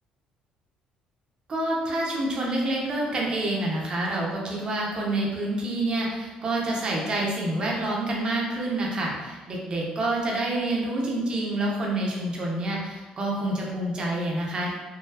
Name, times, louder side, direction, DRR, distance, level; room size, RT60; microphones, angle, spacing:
voice 1, 1.5-14.7, right 1 dB, 40° right, -3 dB, 0.9 m, -27 dB
3.8 x 2.2 x 2.8 m, 1.3 s
cardioid pair, 100°, 2 cm